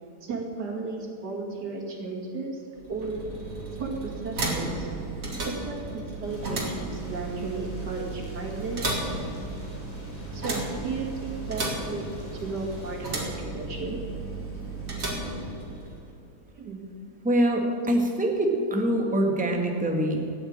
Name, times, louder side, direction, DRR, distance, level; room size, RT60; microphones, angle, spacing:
voice 1, 0.2-2.6 2.9-3.2 3.8-4.9 5.4-8.8 10.3-14.0 16.5-16.8, right 3 dB, 85° right, 0 dB, 2.9 m, -34 dB
sound 1, 2.8-16.1, right 2 dB, 55° right, 2.7 m, -34 dB
sound 2, 6.2-13.2, left 1 dB, 25° left, 3.8 m, -46 dB
voice 2, 17.2-20.3, right 1 dB, 5° right, 2 dB, 1.4 m, -24 dB
14.0 x 9.1 x 8.8 m, 2.5 s
omnidirectional pair, 1.7 m